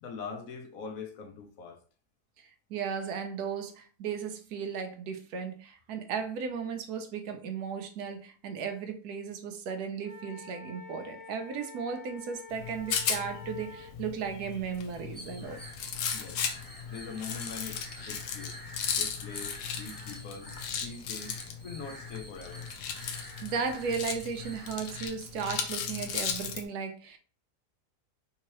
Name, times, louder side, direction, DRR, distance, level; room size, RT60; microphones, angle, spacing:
voice 1, 0.0-1.8 16.1-16.4 16.9-18.6 18.9-21.4 21.6-22.7, left 5 dB, 65° left, 1.0 m, -43 dB
voice 2, 2.4-15.6 23.1-27.2, right 6 dB, 75° right, 1.1 m, -36 dB
Wind instrument woodwind instrument, 10.0-13.9, left 4 dB, 35° right, 1.8 m, -48 dB
Rattle, 12.5-26.6, left 7 dB, 85° left, 1.2 m, -36 dB
sound 1, 15.0-25.1, equal, 10° left, 0.5 m, -48 dB
3.6 x 2.8 x 3.0 m
omnidirectional pair, 1.7 m